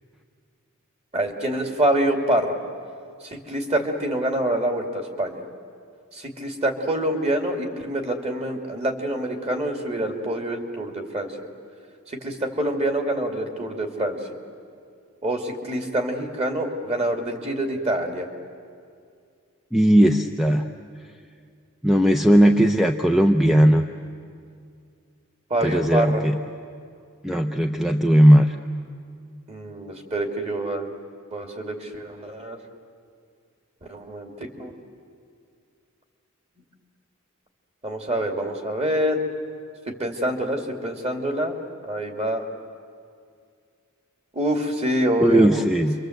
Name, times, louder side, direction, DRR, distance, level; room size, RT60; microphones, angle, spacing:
voice 1, 1.1-2.6 3.2-5.4 6.1-11.5 12.1-14.2 15.2-18.3 25.5-26.2 29.5-30.9 31.3-32.6 33.9-34.3 34.6-34.7 37.8-39.2 39.9-41.5 41.8-42.4 44.3-45.5, right 1 dB, 30° right, 3 dB, 2.5 m, -26 dB
voice 2, 19.7-20.6 21.8-23.8 25.6-26.4 27.2-28.5 45.2-45.9, right 1 dB, ahead, 4 dB, 0.6 m, -17 dB
29.5 x 24.0 x 8.0 m, 2.3 s
head